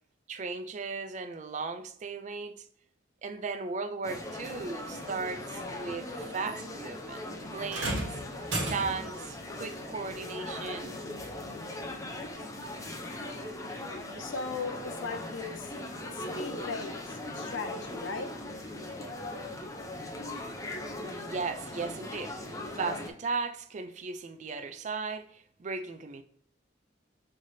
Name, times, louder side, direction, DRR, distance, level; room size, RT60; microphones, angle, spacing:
voice 1, 0.3-2.7 3.2-7.3 7.5-8.2 8.7-11.0 21.2-26.2, right 4 dB, 40° right, 0.3 m, -36 dB
sound 1, 4.0-23.1, left 1 dB, 15° left, 0.5 m, -39 dB
sound 2, 7.7-9.2 10.7-10.9 11.7-11.8, right 1 dB, 70° right, 1.4 m, -34 dB
voice 2, 14.2-15.7 16.1-18.3, left 4 dB, 80° left, 0.6 m, -38 dB
5.5 x 3.3 x 2.6 m
head